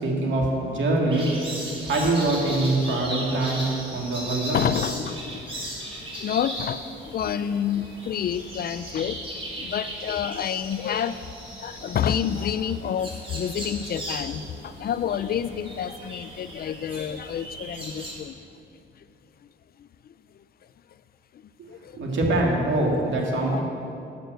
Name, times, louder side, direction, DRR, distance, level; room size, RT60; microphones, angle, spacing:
voice 1, 0.0-1.3 1.8-4.6 21.9-23.6, right 2 dB, 70° right, -1 dB, 2.4 m, -24 dB
sound 1, 1.1-18.1, right 1 dB, 25° right, 3.0 m, -37 dB
voice 2, 4.5-5.4 6.2-9.2 9.6-11.2 11.6-18.4 21.7-21.9 23.5-23.6, left 9 dB, 50° left, 14 dB, 0.4 m, -28 dB
8.9 x 8.1 x 7.9 m, 2.7 s
cardioid pair, 90°, 20 cm